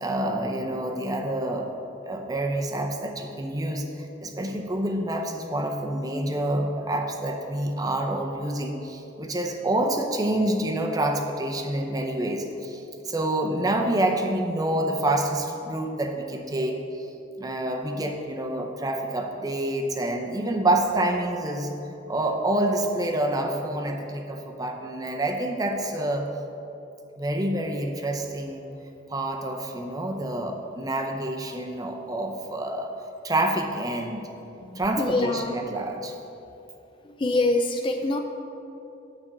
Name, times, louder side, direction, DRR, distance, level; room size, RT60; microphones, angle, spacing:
voice 1, 0.0-1.7 2.1-3.9 4.2-17.1 17.4-21.7 22.1-26.3 27.2-28.7 29.1-32.9 33.2-34.3 34.8-36.1, right 1 dB, 20° right, 3 dB, 0.6 m, -27 dB
voice 2, 34.6-35.6 37.0-38.2, left 2 dB, 25° left, 5 dB, 0.3 m, -25 dB
8.7 x 4.4 x 6.7 m, 2.9 s
head